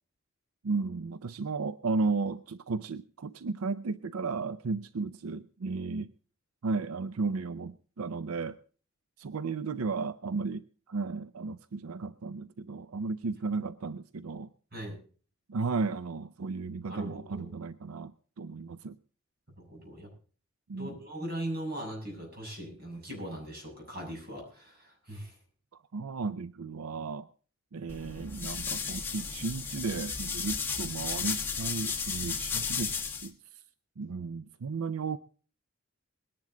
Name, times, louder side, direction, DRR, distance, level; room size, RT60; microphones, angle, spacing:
voice 1, 0.6-6.1 6.6-8.6 9.2-14.5 15.5-18.1 18.4-19.0 20.7-21.0 25.9-27.3 27.7-33.0 33.2-33.3 34.0-35.2, right 4 dB, 90° right, 14 dB, 0.5 m, -34 dB
voice 2, 16.9-17.5 19.6-20.1 20.7-25.3, right 1 dB, 45° right, 0 dB, 7.0 m, -40 dB
sound 1, 27.9-33.3, left 5 dB, 10° left, 1.5 m, -34 dB
21.0 x 10.5 x 3.8 m, 0.40 s
head